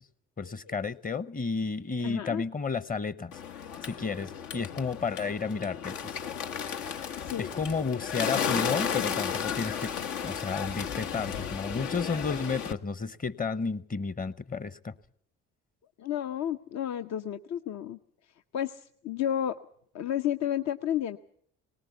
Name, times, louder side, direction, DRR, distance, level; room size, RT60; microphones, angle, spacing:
voice 1, 0.4-3.3 3.8-6.1 7.4-9.9 10.2-14.9, left 4 dB, 25° left, 17 dB, 0.9 m, -32 dB
voice 2, 2.0-2.4 7.1-7.5 16.0-18.0 18.3-19.5 19.9-21.2, left 10 dB, 60° left, 9 dB, 0.8 m, -32 dB
Bird, 3.3-12.7, left 7 dB, 75° left, 1.2 m, -34 dB
19.0 x 19.0 x 8.1 m, 0.63 s
supercardioid pair, 60°, 31 cm